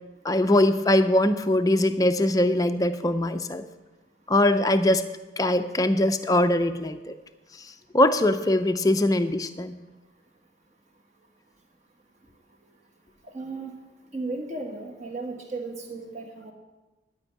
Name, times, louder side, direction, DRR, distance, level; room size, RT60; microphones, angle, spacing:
voice 1, 0.2-3.6 4.3-5.0 5.4-7.1 7.5-9.8, left 1 dB, 20° left, 8 dB, 0.5 m, -22 dB
voice 2, 13.3-13.7 14.1-16.5, right 3 dB, 35° right, 1 dB, 1.6 m, -35 dB
12.0 x 5.4 x 8.8 m, 1.1 s
head